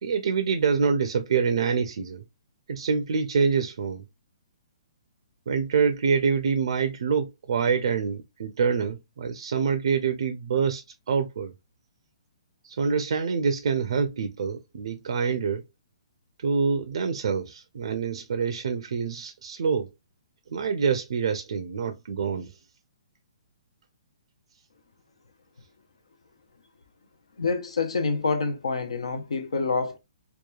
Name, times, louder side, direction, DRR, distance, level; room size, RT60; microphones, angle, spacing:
voice 1, 0.0-2.2 2.7-4.0 5.5-11.5 12.6-15.6 16.4-19.9 20.5-22.6, right 5 dB, 65° right, 0.4 m, -26 dB
voice 2, 27.4-30.0, left 4 dB, 80° left, 0.6 m, -27 dB
2.9 x 2.2 x 2.2 m
hypercardioid pair, 135°, 3 cm